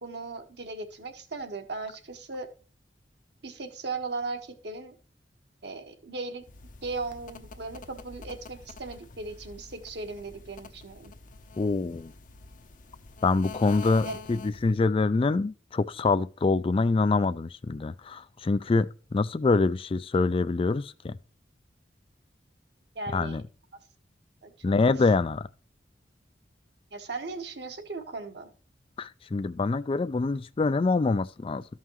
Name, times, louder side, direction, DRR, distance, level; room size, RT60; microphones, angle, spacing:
voice 1, 0.0-2.5 3.4-4.9 5.6-6.4 6.8-11.1 14.0-14.2 22.9-23.4 24.4-24.5 26.9-28.5, right 3 dB, 65° right, 1.5 m, -37 dB
sound 1, 6.4-14.8, left 4 dB, 50° left, 0.8 m, -46 dB
voice 2, 11.6-12.1 13.2-21.2 23.1-23.4 24.6-25.5 29.0-31.6, left 3 dB, 30° left, 0.4 m, -25 dB
13.5 x 5.6 x 3.1 m
head